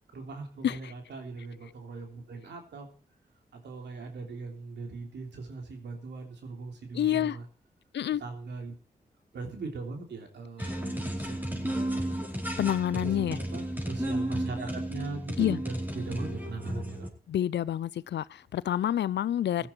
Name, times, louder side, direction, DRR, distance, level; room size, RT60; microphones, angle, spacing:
voice 1, 0.1-2.9 3.5-7.5 8.2-8.7 9.3-12.1 12.9-17.1 19.5-19.7, right 4 dB, 85° right, 3.3 m, -40 dB
voice 2, 6.9-7.4 7.9-8.2 12.6-13.4 15.4-15.6 17.3-19.7, left 11 dB, 85° left, 0.5 m, -28 dB
sound 1, 10.6-17.1, right 1 dB, 10° right, 4.5 m, -33 dB
16.0 x 10.5 x 4.6 m
cardioid pair, 45°, 18 cm